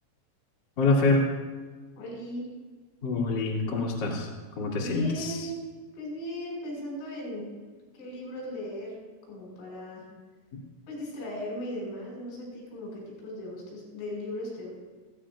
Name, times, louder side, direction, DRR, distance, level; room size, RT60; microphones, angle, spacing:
voice 1, 0.8-1.3 3.0-4.3 4.5-5.5 10.5-10.6, left 3 dB, 40° left, -3 dB, 1.7 m, -26 dB
voice 2, 2.0-2.5 4.8-5.6 5.9-7.6 7.9-9.0 9.3-10.1 10.9-14.7, equal, 80° left, -3 dB, 7.8 m, -37 dB
18.5 x 15.5 x 2.5 m, 1.4 s
omnidirectional pair, 5.6 m